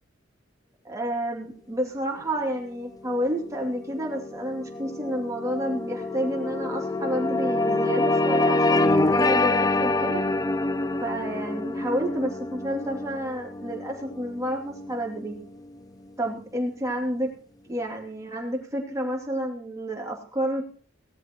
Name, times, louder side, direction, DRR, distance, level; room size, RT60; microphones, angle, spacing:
voice 1, 0.8-10.2 11.0-15.4 16.2-17.3 17.7-20.7, equal, 15° right, -1 dB, 2.8 m, -30 dB
sound 1, 3.1-15.7, left 2 dB, 20° left, 0.5 m, -26 dB
18.0 x 14.0 x 3.1 m, 0.42 s
head